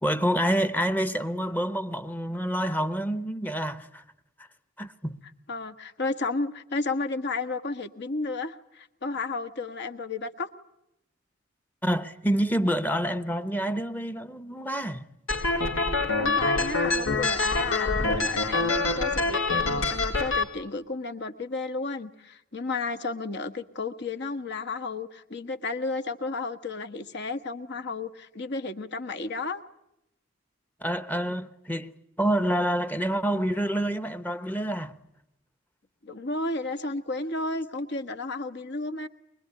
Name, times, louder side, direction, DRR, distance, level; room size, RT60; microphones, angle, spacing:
voice 1, 0.0-4.0 4.8-5.2 11.8-15.1 30.8-31.9 32.2-34.9, equal, 10° left, 1.0 m, -27 dB
voice 2, 5.5-10.5 16.2-29.6 36.0-39.1, left 3 dB, 55° left, 1.5 m, -32 dB
sound 1, 15.3-20.4, left 3 dB, 85° left, 3.6 m, -25 dB
23.5 x 22.5 x 9.7 m
head